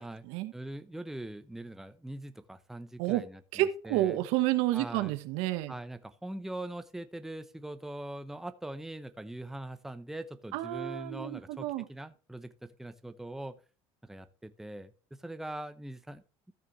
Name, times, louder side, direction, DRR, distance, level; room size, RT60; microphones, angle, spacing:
voice 1, 0.5-4.2 4.7-5.1 5.7-13.6 14.0-16.5, right 1 dB, 5° right, 10 dB, 0.7 m, -42 dB
voice 2, 3.5-5.7 10.5-11.8, right 15 dB, 85° right, 11 dB, 1.2 m, -30 dB
14.0 x 6.6 x 3.2 m, 0.37 s
cardioid pair, 135°, 10 cm